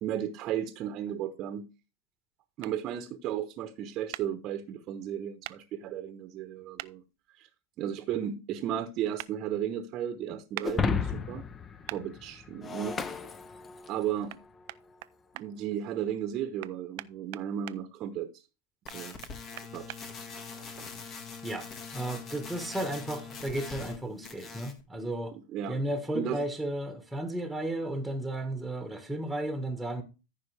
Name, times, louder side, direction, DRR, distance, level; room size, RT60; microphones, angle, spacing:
voice 1, 0.0-1.7 2.6-7.0 7.4-7.5 7.8-11.4 11.9-13.0 13.9-14.3 15.3-18.4 18.9-19.2 19.7-20.0 20.5-20.9 25.3-25.8 26.1-26.4, right 10 dB, 40° right, 1.0 m, -34 dB
sound 1, 2.6-2.7 4.1-4.3 5.4-5.6 6.8-6.9 9.2-9.3 10.5-10.7 11.9-12.0 14.3-14.4 14.7-15.5 16.6-17.8 18.9-20.0, right 19 dB, 60° right, 0.4 m, -41 dB
Shatter, 10.6-14.1, left 6 dB, 25° left, 0.8 m, -33 dB
sound 2, 18.9-24.0 24.2-24.8, left 5 dB, 40° left, 1.8 m, -43 dB
voice 2, 21.9-25.3 25.7-30.0, right 1 dB, ahead, 1.5 m, -34 dB
14.0 x 5.3 x 3.4 m
hypercardioid pair, 100°, 0 cm